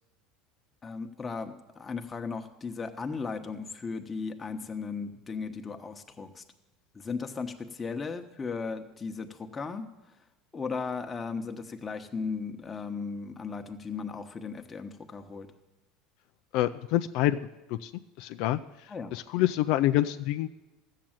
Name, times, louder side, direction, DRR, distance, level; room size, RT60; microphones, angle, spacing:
voice 1, 0.8-6.4 6.9-9.9 10.5-15.5 18.9-19.1, left 5 dB, 20° left, 5 dB, 1.1 m, -36 dB
voice 2, 16.5-17.4 17.7-17.9 18.2-18.6 19.1-20.5, left 14 dB, 65° left, 9 dB, 0.4 m, -26 dB
13.5 x 7.6 x 8.9 m, 1.1 s
supercardioid pair, 125°, 0 cm